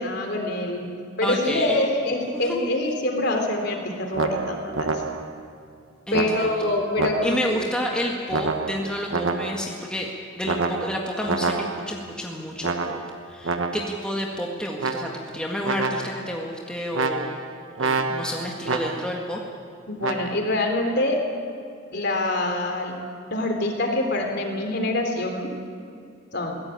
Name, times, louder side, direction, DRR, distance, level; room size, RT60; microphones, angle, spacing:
voice 1, 0.0-5.0 6.1-7.7 19.9-21.2 21.9-23.0 23.3-25.5 26.3-26.6, left 1 dB, 50° left, 3 dB, 3.6 m, -25 dB
voice 2, 1.2-1.8 2.3-2.4 6.1-6.7 7.2-10.1 10.4-13.0 13.3-17.3 17.8-19.4, equal, 5° left, -2 dB, 1.8 m, -30 dB
sound 1, 4.1-5.5 6.1-7.6 8.3-9.8 10.5-12.1 12.6-14.1 14.8-15.4 15.6-16.4 16.9-19.3 20.0-20.4, right 3 dB, 70° right, 1.3 m, -28 dB
22.0 x 17.0 x 9.1 m, 2.5 s
head